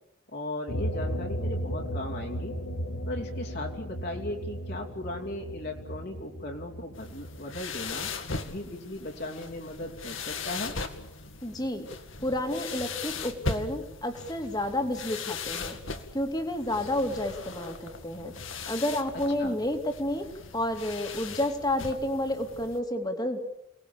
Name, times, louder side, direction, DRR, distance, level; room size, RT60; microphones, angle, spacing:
voice 1, 0.3-2.5 3.1-8.1 8.5-10.7 19.4-19.6, left 1 dB, 50° left, 0 dB, 3.1 m, -37 dB
sound 1, 0.7-7.6, equal, 85° left, 1.9 m, -35 dB
sound 2, 6.9-22.8, left 4 dB, 65° left, 2.2 m, -39 dB
voice 2, 11.4-11.9 12.2-15.8 16.1-18.3 18.7-20.2 20.5-23.4, left 1 dB, 20° left, 5 dB, 2.7 m, -30 dB
29.5 x 19.5 x 7.2 m, 0.83 s
head